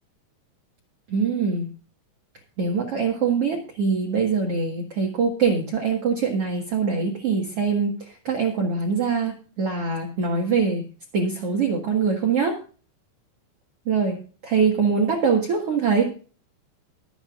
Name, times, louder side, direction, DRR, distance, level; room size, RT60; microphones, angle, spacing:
voice 1, 1.1-1.7 2.6-10.8 11.1-12.6 13.8-14.2 14.4-16.1, right 5 dB, 55° right, 0 dB, 1.6 m, -23 dB
23.0 x 7.8 x 2.5 m, 0.38 s
omnidirectional pair, 5.3 m